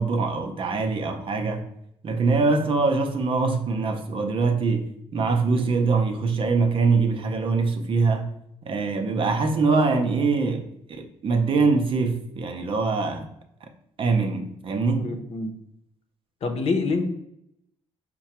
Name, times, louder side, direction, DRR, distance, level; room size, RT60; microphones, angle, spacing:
voice 1, 0.0-1.7 2.0-8.3 8.7-13.3 14.0-15.1, right 4 dB, 50° right, 0.7 m, -23 dB
voice 2, 14.9-15.5 16.4-17.0, left 3 dB, 60° left, 0.7 m, -26 dB
4.7 x 2.2 x 4.3 m
cardioid pair, 85°, 11 cm